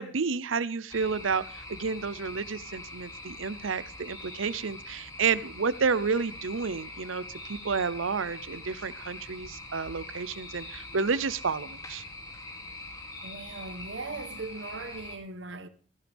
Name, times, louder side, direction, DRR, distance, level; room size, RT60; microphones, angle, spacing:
voice 1, 0.0-12.0, right 5 dB, 85° right, 0.7 m, -30 dB
sound 1, 0.9-15.2, left 2 dB, 20° left, 2.8 m, -43 dB
voice 2, 13.2-15.7, right 3 dB, 65° right, 1.1 m, -39 dB
15.5 x 14.5 x 3.5 m
head